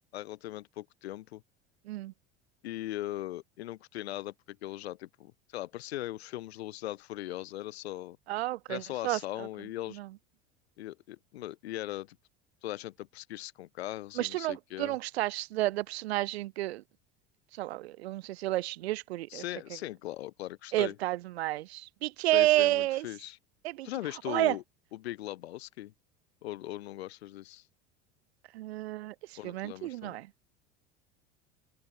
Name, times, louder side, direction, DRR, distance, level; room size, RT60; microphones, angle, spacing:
voice 1, 0.1-1.4 2.6-8.2 8.7-10.0 10.8-12.2 12.6-15.0 19.3-21.0 22.3-23.4 23.8-24.6 24.9-25.9 26.4-27.6 29.4-30.2, left 15 dB, 90° left, 1.0 m, -39 dB
voice 2, 8.3-9.2 10.0-10.1 14.2-16.8 17.6-19.4 20.7-23.1 23.6-23.9 24.3-24.6 28.5-29.1 29.4-30.3, right 16 dB, 90° right, 0.6 m, -30 dB
open air
hypercardioid pair, 85°, 31 cm